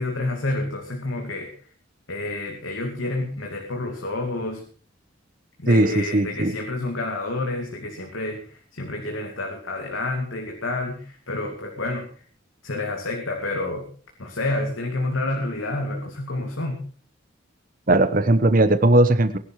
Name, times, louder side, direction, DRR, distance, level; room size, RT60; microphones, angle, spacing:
voice 1, 0.0-1.5 2.1-4.6 5.6-12.1 12.6-13.9 14.2-16.8, left 2 dB, 75° left, 2 dB, 2.5 m, -29 dB
voice 2, 5.7-6.5 17.9-19.4, right 1 dB, 40° right, 11 dB, 1.0 m, -18 dB
19.0 x 11.5 x 4.8 m, 0.43 s
head